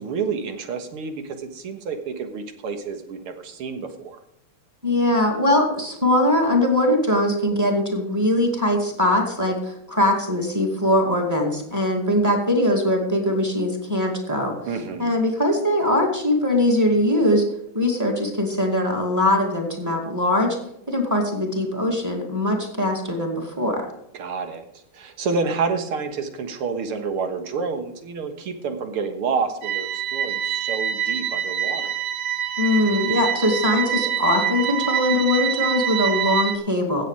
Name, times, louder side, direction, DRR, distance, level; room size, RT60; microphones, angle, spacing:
voice 1, 0.0-4.2 14.7-15.1 24.1-24.7 24.9-31.9, right 5 dB, 90° right, 7 dB, 2.3 m, -29 dB
voice 2, 4.8-14.6 15.0-17.4 17.7-20.6 20.9-23.8 32.6-37.1, left 1 dB, 10° right, 2 dB, 2.1 m, -21 dB
sound 1, 29.6-36.6, right 9 dB, 70° right, 1.5 m, -25 dB
16.0 x 7.6 x 4.9 m, 0.79 s
omnidirectional pair, 2.4 m